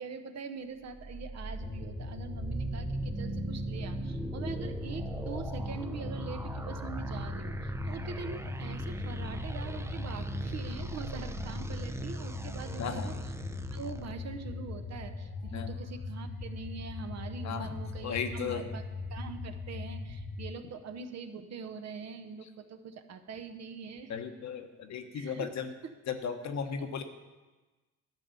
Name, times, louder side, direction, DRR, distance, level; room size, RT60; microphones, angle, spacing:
voice 1, 0.0-13.3 13.7-18.8 19.1-24.1 25.1-25.5 26.6-26.7, right 5 dB, 60° right, 8 dB, 1.0 m, -43 dB
sound 1, 0.9-14.1, right 2 dB, 10° right, 0.5 m, -39 dB
sound 2, 1.6-20.5, left 3 dB, 30° left, 1.1 m, -40 dB
voice 2, 12.8-13.1 15.5-15.7 17.4-17.7 18.0-18.6 24.1-25.7 26.1-27.0, left 7 dB, 65° left, 6 dB, 1.1 m, -35 dB
12.0 x 5.4 x 8.2 m, 1.2 s
cardioid pair, 90°, 30 cm